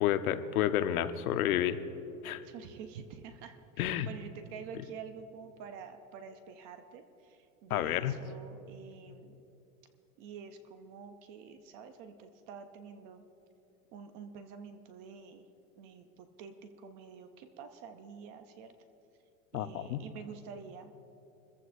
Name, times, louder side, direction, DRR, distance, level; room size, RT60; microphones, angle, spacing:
voice 1, 0.0-1.8 2.2-2.4 3.8-4.1 7.7-8.2 19.5-20.0, left 11 dB, 85° left, 10 dB, 0.9 m, -30 dB
voice 2, 2.4-9.4 10.2-13.2 13.9-15.4 15.8-18.7 19.5-20.9, right 6 dB, 25° right, 8 dB, 0.4 m, -48 dB
24.5 x 14.5 x 2.5 m, 2.9 s
supercardioid pair, 165°, 42 cm